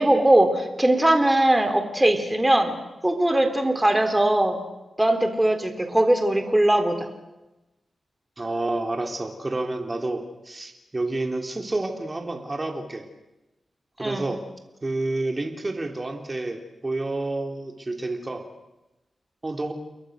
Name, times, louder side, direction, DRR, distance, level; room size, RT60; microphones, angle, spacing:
voice 1, 0.0-2.8 3.0-4.6 5.0-7.0 14.0-14.2, right 1 dB, 15° right, 6 dB, 3.7 m, -20 dB
voice 2, 8.4-13.1 14.0-14.4 14.8-18.4 19.4-19.7, right 2 dB, 30° right, 4 dB, 3.6 m, -29 dB
29.5 x 22.0 x 6.6 m, 1.0 s
cardioid pair, 60°, 0 cm